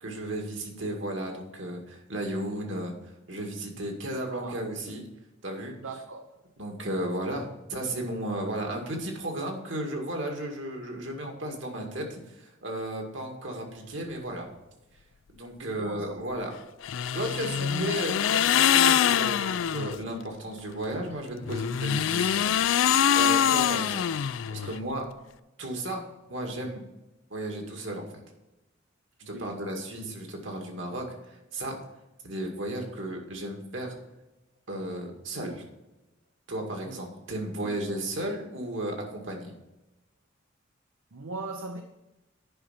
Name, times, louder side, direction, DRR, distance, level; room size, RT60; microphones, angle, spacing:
voice 1, 0.0-2.9 3.3-5.0 5.4-5.7 6.6-14.5 15.3-16.5 17.1-22.5 23.1-24.1 24.5-25.1 25.6-26.0 26.3-26.9 27.3-28.1 29.3-31.8 32.2-34.0 34.7-35.6 36.5-39.5, right 1 dB, 65° right, 2.1 m, -34 dB
voice 2, 4.3-4.7 5.8-6.4 8.4-8.6 15.6-16.4 17.4-17.9 24.6-24.9 29.2-29.6 36.8-37.0 37.6-37.8 41.1-41.8, right 2 dB, 80° right, 0.8 m, -40 dB
sound 1, 16.8-20.0 21.4-24.8, left 9 dB, 70° left, 0.4 m, -24 dB
10.0 x 5.5 x 5.8 m
head